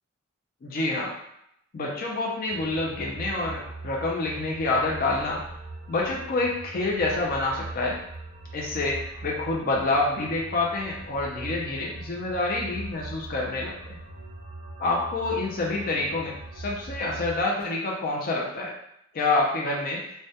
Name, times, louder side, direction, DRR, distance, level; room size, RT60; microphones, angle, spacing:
voice 1, 0.6-1.1 1.7-5.4 5.9-8.0 8.5-14.0 14.8-18.7 19.1-20.1, left 2 dB, 45° left, -2 dB, 0.4 m, -27 dB
sound 1, 2.5-17.4, right 2 dB, 30° right, 0.3 m, -41 dB
2.2 x 2.1 x 2.7 m, 0.77 s
head